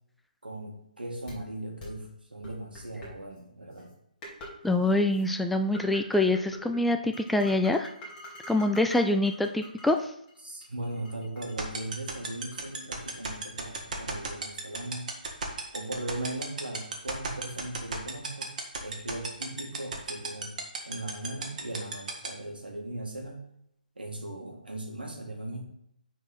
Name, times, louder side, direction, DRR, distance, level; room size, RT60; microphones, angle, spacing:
voice 1, 0.4-3.9 10.4-15.1 15.7-18.5 18.8-23.4 24.0-25.6, right 1 dB, 90° right, 1 dB, 2.2 m, -38 dB
sound 1, 1.3-1.4 1.8-1.9 2.4-3.1 3.8-3.9 4.2-4.5 4.8-5.2 5.7-6.8 7.1-10.0 10.3-12.8, equal, 20° left, 2.4 m, -45 dB
voice 2, 4.6-7.9 8.5-10.1, left 2 dB, ahead, 5 dB, 0.3 m, -25 dB
sound 2, 11.4-22.3, right 5 dB, 55° right, 1.8 m, -32 dB
9.2 x 4.6 x 4.1 m, 0.75 s
figure-of-eight pair, 145°, 5 cm